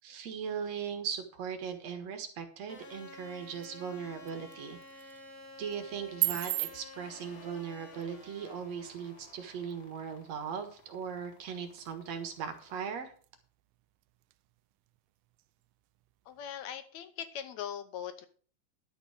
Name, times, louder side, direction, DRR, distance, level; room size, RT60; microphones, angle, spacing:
voice 1, 0.0-5.2 5.6-13.1, right 7 dB, 60° right, 6 dB, 2.5 m, -39 dB
sound 1, 2.7-12.8, left 2 dB, 30° left, 2.1 m, -52 dB
sound 2, 2.7-16.8, right 19 dB, 85° right, 2.2 m, -43 dB
voice 2, 16.3-18.3, left 9 dB, 75° left, 10 dB, 1.8 m, -40 dB
11.5 x 6.1 x 6.5 m, 0.43 s
omnidirectional pair, 3.9 m